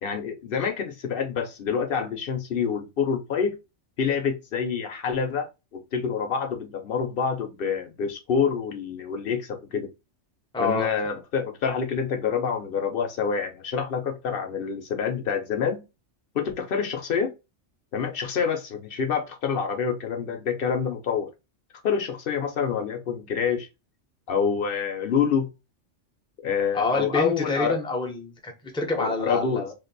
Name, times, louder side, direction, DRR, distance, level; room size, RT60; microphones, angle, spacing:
voice 1, 0.0-3.6 4.0-9.9 10.6-15.8 16.3-17.3 17.9-21.3 21.8-23.7 24.3-25.5 26.4-27.8 28.9-29.7, left 6 dB, 55° left, 0.8 m, -27 dB
voice 2, 10.5-10.9 26.7-29.7, left 3 dB, 5° left, 0.5 m, -27 dB
2.6 x 2.5 x 3.8 m
omnidirectional pair, 1.2 m